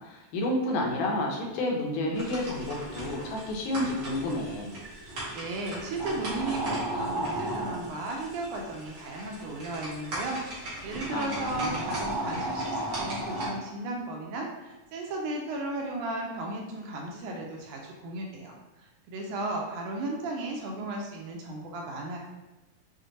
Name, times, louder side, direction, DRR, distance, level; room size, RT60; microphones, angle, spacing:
voice 1, 0.1-4.8 11.1-11.8, left 1 dB, 85° left, -1 dB, 2.3 m, -30 dB
sound 1, 2.1-13.5, right 1 dB, 55° right, 1.2 m, -35 dB
voice 2, 5.0-18.5 19.1-22.2, right 2 dB, 80° right, 0 dB, 1.9 m, -35 dB
6.2 x 2.1 x 2.8 m, 1.0 s
omnidirectional pair, 3.7 m